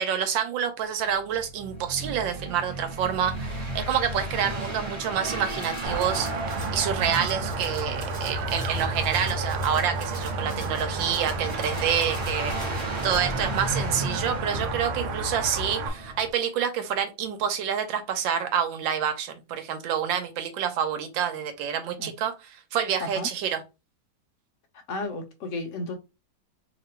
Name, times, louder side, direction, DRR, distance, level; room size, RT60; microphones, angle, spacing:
voice 1, 0.0-6.3 6.7-12.5 13.0-23.6, right 8 dB, 70° right, 1.4 m, -28 dB
sound 1, 1.1-16.3, right 1 dB, 25° right, 1.4 m, -35 dB
Rattle (instrument), 5.2-13.2, right 1 dB, 10° right, 1.5 m, -47 dB
sound 2, 5.8-15.9, right 3 dB, 85° right, 1.6 m, -31 dB
voice 2, 24.9-26.0, left 2 dB, 75° left, 0.7 m, -33 dB
3.0 x 3.0 x 4.3 m
omnidirectional pair, 2.3 m